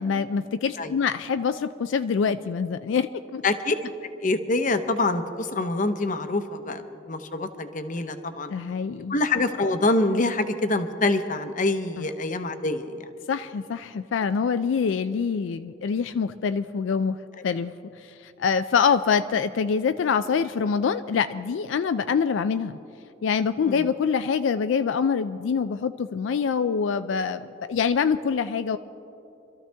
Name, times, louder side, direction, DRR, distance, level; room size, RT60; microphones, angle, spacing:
voice 1, 0.0-3.4 8.5-9.2 12.0-12.1 13.3-17.2 17.4-17.7 18.0-22.8 23.2-28.8, left 6 dB, 85° left, 11 dB, 0.4 m, -25 dB
voice 2, 3.4-3.8 4.2-8.5 9.1-13.1 17.4-17.5 23.6-23.8, left 2 dB, 45° left, 9 dB, 0.8 m, -25 dB
25.0 x 13.5 x 3.4 m, 2.7 s
head